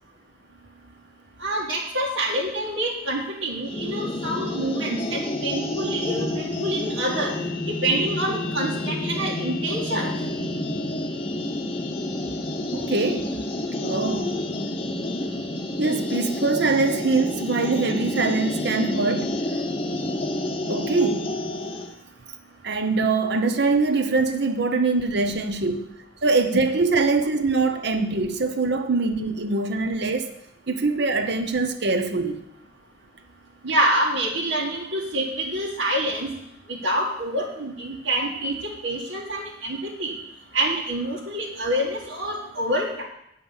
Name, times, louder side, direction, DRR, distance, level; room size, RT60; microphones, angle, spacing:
voice 1, 1.4-7.3 7.8-10.1 33.6-36.3 36.7-38.6 38.8-40.1 40.5-43.0, right 1 dB, 80° right, 2.0 m, -26 dB
sound 1, 3.6-21.9, left 1 dB, 30° left, 0.8 m, -29 dB
voice 2, 12.7-13.4 13.8-14.5 15.8-19.5 20.7-21.3 22.6-30.3 30.7-32.4, right 3 dB, 55° right, 0.9 m, -23 dB
8.7 x 5.9 x 7.2 m
head